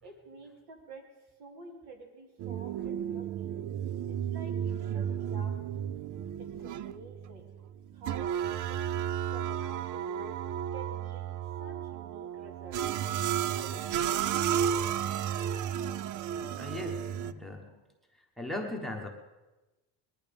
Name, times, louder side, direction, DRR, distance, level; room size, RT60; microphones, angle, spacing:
voice 1, 0.0-1.1 1.4-3.5 4.1-5.7 6.4-7.5 7.9-10.4 10.7-12.9 13.5-13.8, right 3 dB, 65° right, 2 dB, 3.3 m, -49 dB
sound 1, 2.4-17.3, right 9 dB, 50° right, 0.5 m, -33 dB
voice 2, 16.5-17.8 18.1-19.1, left 1 dB, ahead, 4 dB, 1.1 m, -39 dB
20.0 x 11.5 x 5.2 m, 1.1 s
cardioid pair, 160°, 41 cm